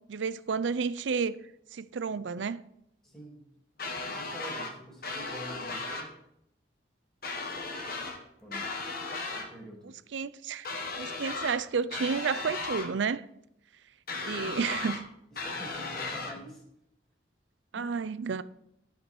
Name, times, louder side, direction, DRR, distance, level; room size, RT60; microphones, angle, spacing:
voice 1, 0.1-1.4 1.7-2.6 10.1-10.7 11.0-13.2 14.2-15.0 17.7-18.4, right 5 dB, 80° right, 0.5 m, -31 dB
voice 2, 3.0-3.4 4.1-6.1 8.4-8.7 9.3-10.0 15.3-16.6 17.7-17.9, right 1 dB, 5° left, 2.9 m, -46 dB
sound 1, 3.8-4.7 5.0-6.1 7.2-8.2 8.5-9.5 10.6-11.6 11.9-12.9 14.1-15.0 15.4-16.3, left 3 dB, 55° left, 1.6 m, -36 dB
13.5 x 6.1 x 4.6 m
head